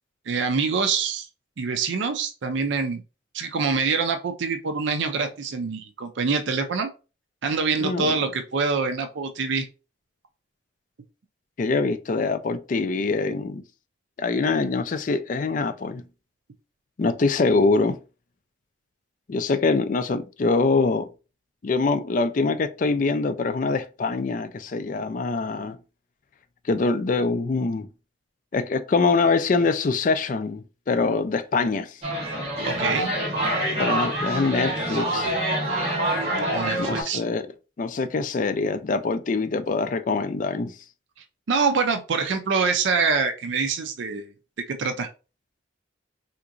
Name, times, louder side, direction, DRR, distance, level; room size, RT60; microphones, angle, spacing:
voice 1, 0.3-1.3 1.6-3.0 3.3-6.9 7.4-9.7 32.6-33.1 36.5-37.2 41.5-44.3 44.7-45.1, right 5 dB, 70° right, 0.4 m, -25 dB
voice 2, 7.8-8.2 11.6-13.6 14.2-16.0 17.0-18.0 19.3-21.1 21.6-25.8 26.7-27.9 28.5-32.0 33.8-35.3 36.8-37.5 37.8-40.7, left 3 dB, 40° left, 0.3 m, -24 dB
sound 1, 32.0-37.0, right 1 dB, 30° right, 1.2 m, -26 dB
3.5 x 2.9 x 2.5 m
head